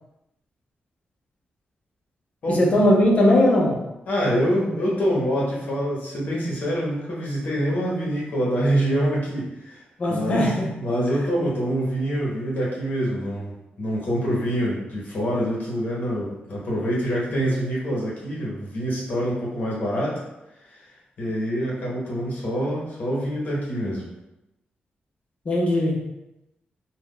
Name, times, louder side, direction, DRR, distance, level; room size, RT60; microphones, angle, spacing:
voice 1, 2.5-3.8 10.0-10.7 11.2-11.3 17.3-17.4 25.5-26.0, left 1 dB, 40° left, -2 dB, 0.6 m, -19 dB
voice 2, 4.1-9.8 10.1-10.4 10.8-20.2 20.7-20.8 21.2-24.1, equal, 55° left, -5 dB, 1.0 m, -25 dB
2.6 x 2.2 x 3.6 m, 0.92 s
wide cardioid pair, 180°, 3 cm